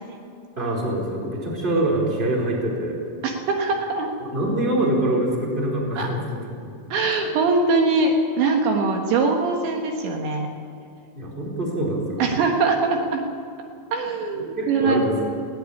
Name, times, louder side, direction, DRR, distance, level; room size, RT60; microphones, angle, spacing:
voice 1, 0.6-3.1 4.2-6.7 11.1-12.5 14.3-15.1, right 1 dB, 10° right, -3 dB, 4.0 m, -25 dB
voice 2, 3.2-4.1 6.0-6.1 6.9-10.5 12.2-13.2 13.9-15.0, right 3 dB, 75° right, 2 dB, 3.6 m, -22 dB
19.5 x 16.0 x 8.5 m, 2.5 s
omnidirectional pair, 5.4 m